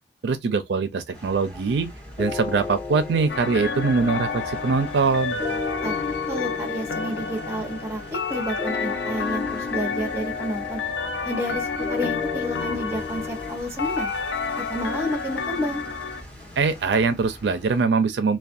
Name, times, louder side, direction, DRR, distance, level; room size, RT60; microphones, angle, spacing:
voice 1, 0.2-1.9 2.2-5.4 16.6-18.4, right 4 dB, 75° right, 0.4 m, -22 dB
sound 1, 1.1-17.8, equal, 10° left, 1.1 m, -43 dB
sound 2, 2.2-13.6, left 5 dB, 35° left, 1.0 m, -34 dB
sound 3, 3.3-16.2, left 4 dB, 80° left, 0.5 m, -30 dB
voice 2, 6.3-10.8 11.2-14.1 14.6-15.8, equal, 15° right, 0.7 m, -30 dB
2.3 x 2.2 x 2.6 m
head